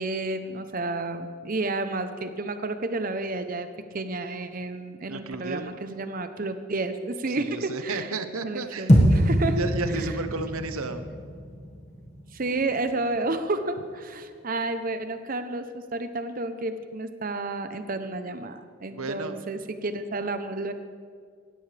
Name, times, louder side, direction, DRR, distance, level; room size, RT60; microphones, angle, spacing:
voice 1, 0.0-3.7 3.9-8.1 8.4-9.6 9.9-10.2 12.3-20.7, right 2 dB, 40° right, 9 dB, 0.7 m, -31 dB
voice 2, 5.1-5.6 7.3-8.9 9.6-11.0 18.9-19.4, right 3 dB, 75° right, 9 dB, 1.0 m, -32 dB
sound 1, 8.9-13.2, equal, 30° left, 1.6 m, -24 dB
18.5 x 14.0 x 3.4 m, 2.1 s
head